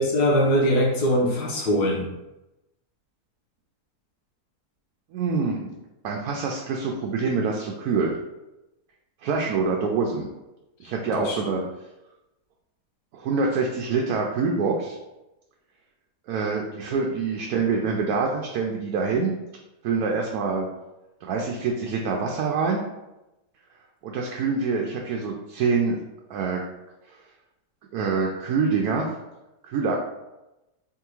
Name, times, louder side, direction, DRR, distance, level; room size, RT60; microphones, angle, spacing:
voice 1, 0.0-2.1 11.1-11.4, equal, 80° left, -2 dB, 1.6 m, -22 dB
voice 2, 5.1-5.7 6.0-8.2 9.2-10.3 10.8-11.6 13.1-15.0 16.3-19.4 19.8-20.7 21.2-22.8 24.0-26.0 26.3-26.6 27.1-27.2 27.9-29.1 29.6-30.0, right 4 dB, 70° right, 0 dB, 1.0 m, -25 dB
3.9 x 3.5 x 3.0 m, 0.96 s
omnidirectional pair, 1.7 m